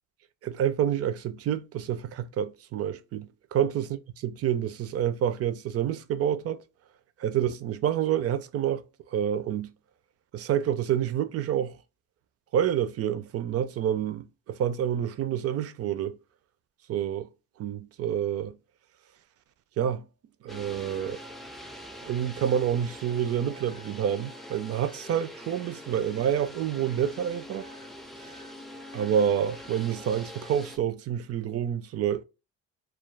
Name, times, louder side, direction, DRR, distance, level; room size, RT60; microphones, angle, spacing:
voice 1, 0.4-3.9 4.2-6.6 7.2-9.7 10.3-11.8 12.5-16.2 16.9-17.3 17.6-18.6 19.8-20.1 20.4-21.2 22.1-27.7 28.9-32.2, right 9 dB, 50° right, 0.5 m, -28 dB
sound 1, 20.5-30.8, equal, ahead, 0.4 m, -44 dB
2.4 x 2.3 x 3.1 m
cardioid pair, 90°, 30 cm